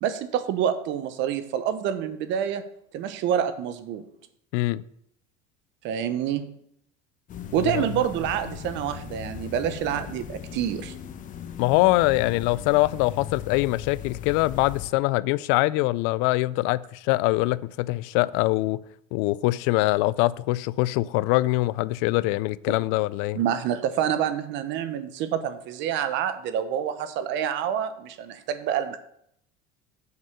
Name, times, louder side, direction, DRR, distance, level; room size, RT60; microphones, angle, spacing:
voice 1, 0.0-2.6 2.9-4.0 5.8-6.5 7.5-10.9 23.3-29.0, right 9 dB, 60° right, 1.0 m, -27 dB
voice 2, 4.5-4.8 7.6-7.9 11.6-18.8 19.1-23.4, left 19 dB, 70° left, 0.4 m, -23 dB
sound 1, 7.3-14.9, left 9 dB, 40° left, 0.9 m, -38 dB
8.0 x 5.5 x 6.6 m
supercardioid pair, 115°, 21 cm